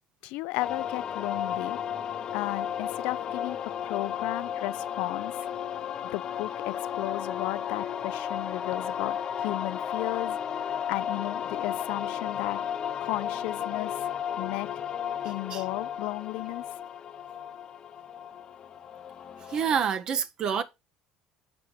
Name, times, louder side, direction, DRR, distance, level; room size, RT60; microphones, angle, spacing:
voice 1, 0.2-1.8 2.3-5.4 6.1-12.7 13.0-14.1 14.4-14.8 15.2-16.8, left 21 dB, 80° left, 0.4 m, -34 dB
sound 1, 0.6-19.8, left 9 dB, 35° left, 0.6 m, -34 dB
voice 2, 19.4-20.6, right 7 dB, 40° right, 0.7 m, -28 dB
6.1 x 4.4 x 5.4 m
cardioid pair, 140°, 2 cm